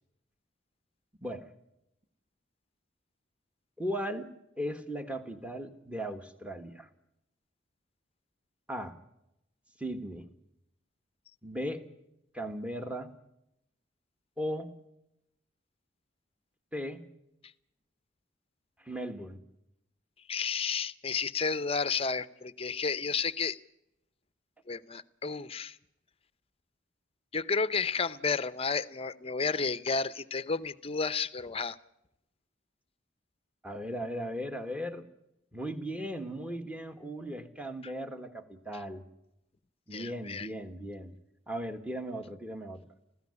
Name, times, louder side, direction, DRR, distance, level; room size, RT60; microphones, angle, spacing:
voice 1, 3.8-4.3 4.6-6.9 8.7-8.9 9.8-10.3 11.4-11.8 12.3-13.1 14.4-14.7 16.7-17.0 18.8-19.4 33.6-35.1 35.5-39.0 39.9-41.1 41.5-42.8, equal, 5° right, 7 dB, 1.5 m, -37 dB
voice 2, 20.3-23.6 24.7-25.8 27.3-31.8 37.8-37.9 39.9-40.5, left 5 dB, 30° left, 15 dB, 0.7 m, -32 dB
20.5 x 16.0 x 9.7 m, 0.84 s
head